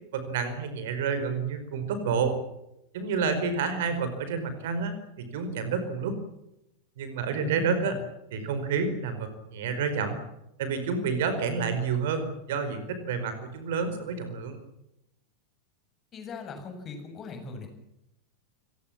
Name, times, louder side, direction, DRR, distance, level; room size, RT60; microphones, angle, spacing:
voice 1, 0.1-2.4 2.9-6.2 7.0-8.0 8.3-10.2 10.6-14.6, right 5 dB, 55° right, 10 dB, 4.9 m, -29 dB
voice 2, 7.3-8.0 16.1-17.7, left 4 dB, 25° left, 5 dB, 7.9 m, -39 dB
30.0 x 19.0 x 7.3 m, 0.87 s
figure-of-eight pair, 90°, 0 cm